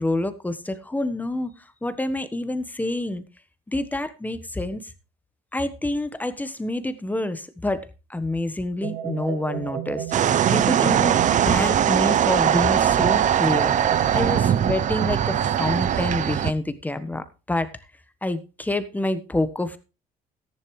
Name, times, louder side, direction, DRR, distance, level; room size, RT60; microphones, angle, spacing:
voice 1, 0.0-3.2 3.7-4.9 5.5-17.7 18.2-19.8, left 1 dB, 10° left, 1.2 m, -28 dB
sound 1, 8.8-16.2, right 9 dB, 85° right, 1.7 m, -33 dB
sound 2, 10.1-16.5, right 10 dB, 45° right, 0.7 m, -21 dB
13.5 x 10.5 x 3.2 m
cardioid pair, 110°, 17 cm